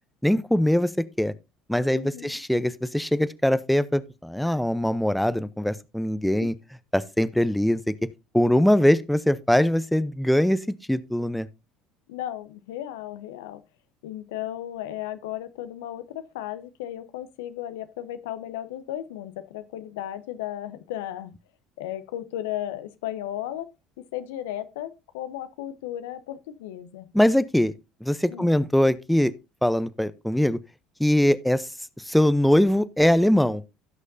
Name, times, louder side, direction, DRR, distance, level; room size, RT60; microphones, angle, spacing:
voice 1, 0.2-0.9 1.2-1.3 1.7-6.5 6.9-7.9 8.3-11.5 27.1-27.7 28.0-29.3 29.6-30.6 31.0-31.7 32.1-33.6, left 1 dB, 5° left, 0.7 m, -22 dB
voice 2, 1.9-2.4 12.1-13.6 14.0-21.3 21.8-23.7 24.0-27.1 28.3-28.6, left 12 dB, 75° left, 0.7 m, -35 dB
16.5 x 6.4 x 2.6 m
hypercardioid pair, 65°, 0 cm